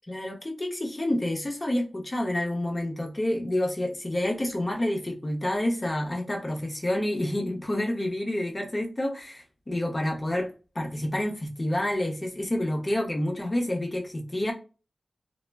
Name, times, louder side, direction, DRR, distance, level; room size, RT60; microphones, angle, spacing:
voice 1, 0.1-14.5, left 1 dB, 25° left, 0.7 m, -28 dB
2.1 x 2.0 x 3.2 m
wide cardioid pair, 105°, 0 cm